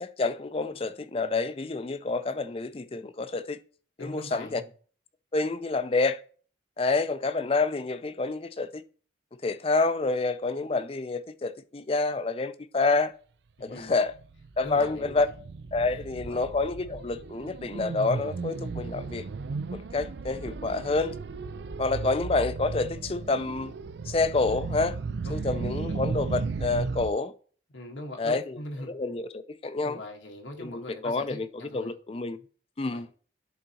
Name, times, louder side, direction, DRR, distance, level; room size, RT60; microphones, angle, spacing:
voice 1, 0.0-3.6 4.0-4.6 5.3-6.2 6.8-8.8 9.4-13.1 13.6-14.1 14.6-15.3 15.7-19.2 19.9-21.1 21.8-23.7 24.1-24.9 25.3-27.3 28.2-28.4 28.9-30.0 30.6-31.5 31.7-32.4 32.8-33.1, left 3 dB, 30° left, 0.4 m, -28 dB
voice 2, 4.0-4.7 13.6-14.0 14.6-15.3 15.9-16.4 21.9-22.1 25.2-25.5 25.9-26.0 27.7-28.9 29.8-31.9 32.8-33.0, left 1 dB, 85° left, 1.4 m, -41 dB
sound 1, 14.0-27.1, right 4 dB, 65° right, 0.4 m, -35 dB
11.0 x 4.0 x 2.9 m
head